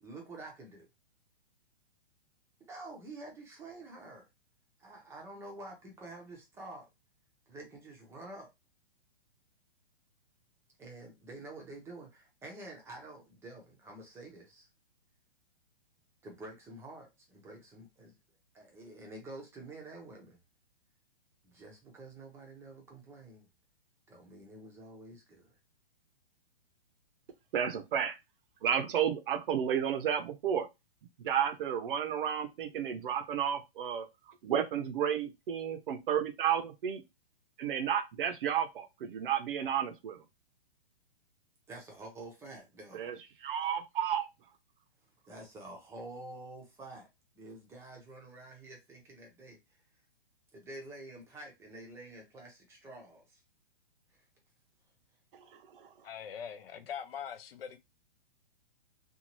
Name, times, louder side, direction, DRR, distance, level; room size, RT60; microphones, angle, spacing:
voice 1, 0.0-0.9 2.6-4.3 4.8-6.9 7.5-8.5 10.8-14.7 16.2-18.1 18.5-20.4 21.4-23.5 24.1-25.6 41.7-43.1 45.3-47.1 47.3-49.6 50.5-53.4 54.1-54.2, right 2 dB, 10° right, 0.6 m, -48 dB
voice 2, 27.5-28.2 28.6-30.7 31.2-34.1 34.4-37.0 37.6-40.2 42.9-43.2 43.4-44.3 55.7-55.9, right 8 dB, 55° right, 0.6 m, -32 dB
voice 3, 56.0-57.8, left 8 dB, 65° left, 0.7 m, -42 dB
2.7 x 2.4 x 2.9 m
hypercardioid pair, 145°, 32 cm